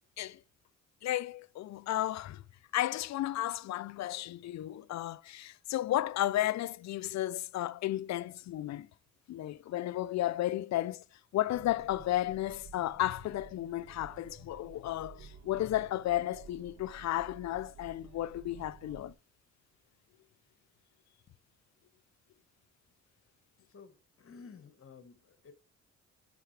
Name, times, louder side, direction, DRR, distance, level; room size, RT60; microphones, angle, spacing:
voice 1, 1.0-2.4 2.7-8.9 9.3-19.1, left 14 dB, 65° left, 0.5 m, -33 dB
sound 1, 11.5-19.1, right 6 dB, 65° right, 1.2 m, -53 dB
voice 2, 23.6-25.5, left 5 dB, 45° left, 1.5 m, -53 dB
10.5 x 6.6 x 3.3 m
cardioid pair, 90°, 30 cm